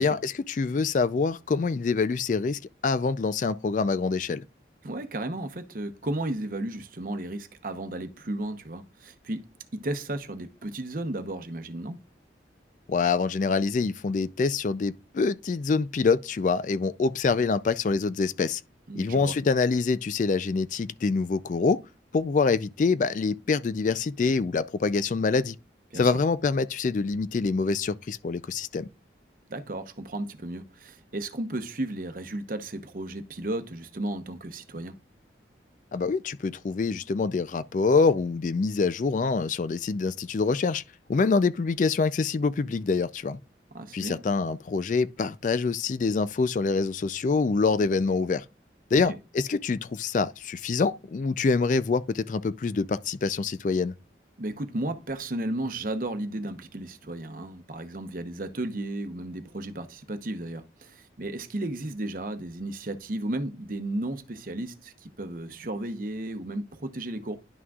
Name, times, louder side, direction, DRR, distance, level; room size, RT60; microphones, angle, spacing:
voice 1, 0.0-4.4 12.9-18.6 19.0-21.8 22.1-25.6 25.9-28.9 35.9-40.8 41.1-43.4 43.9-48.4 48.9-53.9, left 4 dB, 45° left, 0.3 m, -25 dB
voice 2, 4.8-9.4 9.7-12.0 18.9-19.3 25.9-26.2 29.5-35.0 43.7-44.2 48.9-49.2 54.4-67.4, right 1 dB, 50° right, 0.8 m, -34 dB
11.0 x 6.0 x 2.4 m
head